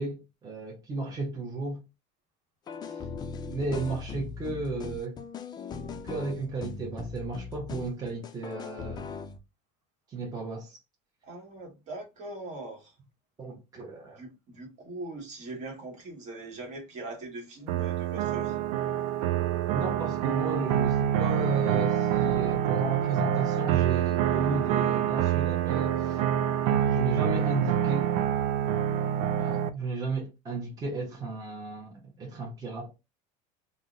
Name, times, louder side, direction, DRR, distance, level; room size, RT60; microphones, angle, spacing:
voice 1, 0.0-1.8 2.8-3.0 3.5-5.1 6.0-9.1 10.1-10.8 13.4-14.2 19.7-26.2 26.9-28.1 29.4-32.9, right 3 dB, 20° right, 0.9 m, -34 dB
sound 1, 2.7-9.4, left 5 dB, 25° left, 0.4 m, -39 dB
voice 2, 11.2-12.9 14.2-18.6, right 2 dB, 45° right, 1.4 m, -41 dB
sound 2, 17.7-29.7, right 10 dB, 80° right, 0.4 m, -26 dB
2.6 x 2.1 x 3.7 m
supercardioid pair, 120°, 17 cm